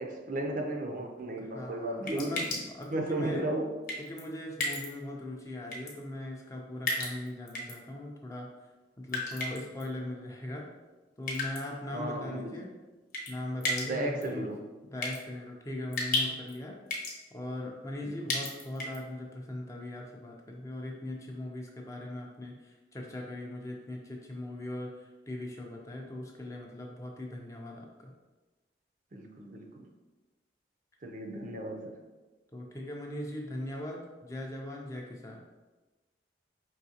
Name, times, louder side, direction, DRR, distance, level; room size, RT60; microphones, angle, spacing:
voice 1, 0.0-2.4 2.9-3.7 11.9-12.5 13.8-14.6 18.0-18.3 29.1-29.9 31.0-32.0, right 1 dB, 45° right, 2 dB, 0.5 m, -34 dB
voice 2, 1.4-3.5 4.0-8.5 9.0-10.7 11.2-12.7 13.3-14.5 14.9-16.8 17.3-28.1 32.5-35.4, left 1 dB, 20° left, 0 dB, 0.4 m, -40 dB
sound 1, 2.1-2.8 3.9-4.2 4.6-4.9 5.7-5.9 6.9-7.7 9.1-9.8 11.3-11.6 13.1-13.3 13.6-13.9 14.2-14.3 15.0-15.2 15.9-16.5 16.9-17.2 18.3-19.0, left 2 dB, 50° left, 0.9 m, -32 dB
4.8 x 3.1 x 2.8 m, 1.2 s
head